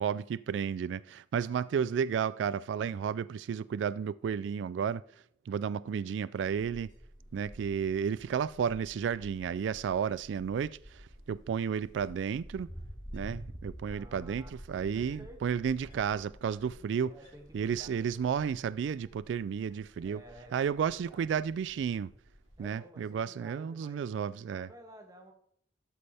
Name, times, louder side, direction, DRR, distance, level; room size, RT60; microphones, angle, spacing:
voice 1, 0.0-6.9 7.3-12.7 13.1-17.2 17.5-20.2 20.5-22.1 22.6-24.7, right 7 dB, 85° right, 0.3 m, -32 dB
Wind, 6.4-22.6, equal, 25° left, 3.1 m, -50 dB
voice 2, 13.9-15.6 16.6-18.1 20.0-20.7 21.0-21.3 22.6-24.0 24.5-25.3, right 1 dB, 20° right, 2.0 m, -53 dB
13.0 x 8.2 x 3.4 m
head